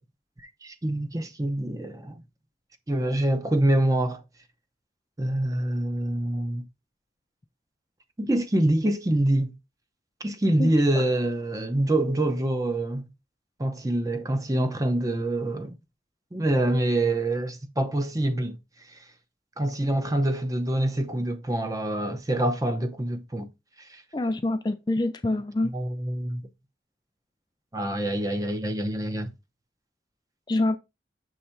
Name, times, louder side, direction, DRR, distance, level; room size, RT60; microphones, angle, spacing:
voice 1, 0.6-2.2 2.9-4.2 5.2-6.6 8.2-9.5 10.2-13.1 13.6-15.8 16.3-18.6 18.9-19.0 19.6-23.5 23.9-24.0 25.7-26.4 27.7-29.3, right 1 dB, 20° right, 0.7 m, -25 dB
voice 2, 24.1-25.7 30.5-30.8, left 2 dB, 25° left, 0.4 m, -26 dB
6.5 x 3.4 x 4.3 m
head